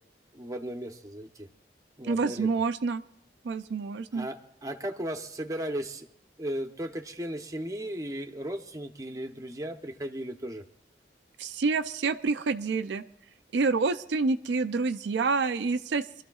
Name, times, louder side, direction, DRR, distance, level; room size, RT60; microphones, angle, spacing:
voice 1, 0.3-1.5 2.0-2.5 4.1-6.1 6.4-10.6, right 1 dB, 20° right, 5 dB, 0.8 m, -36 dB
voice 2, 2.0-3.0 3.4-4.3 11.4-13.0 13.5-16.2, right 4 dB, 75° right, 10 dB, 0.4 m, -28 dB
25.5 x 13.0 x 2.3 m, 0.74 s
head